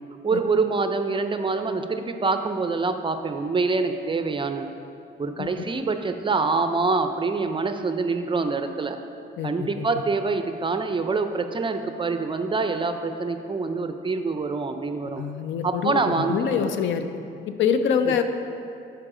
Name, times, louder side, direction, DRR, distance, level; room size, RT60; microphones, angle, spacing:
voice 1, 0.2-4.7 5.2-9.0 9.4-15.2 15.6-16.6, right 4 dB, 25° right, 7 dB, 0.4 m, -25 dB
voice 2, 5.4-5.7 9.4-9.7 15.2-17.1 17.6-18.2, left 7 dB, 75° left, 8 dB, 0.5 m, -25 dB
9.5 x 4.6 x 3.7 m, 2.5 s
cardioid pair, 90°, 20 cm